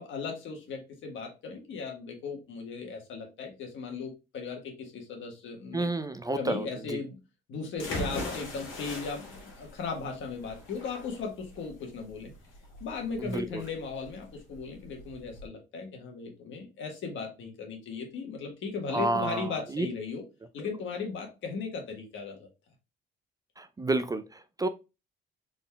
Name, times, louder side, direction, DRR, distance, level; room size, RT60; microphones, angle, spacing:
voice 1, 0.0-5.9 6.4-7.2 7.5-12.3 12.8-20.2 20.5-22.5, left 5 dB, 75° left, 1.4 m, -37 dB
voice 2, 5.7-7.0 13.2-13.6 18.9-19.9 23.6-24.7, right 2 dB, 20° right, 0.3 m, -30 dB
sound 1, 7.8-15.5, left 2 dB, 90° left, 2.0 m, -40 dB
3.9 x 3.6 x 2.2 m
cardioid pair, 90°, 20 cm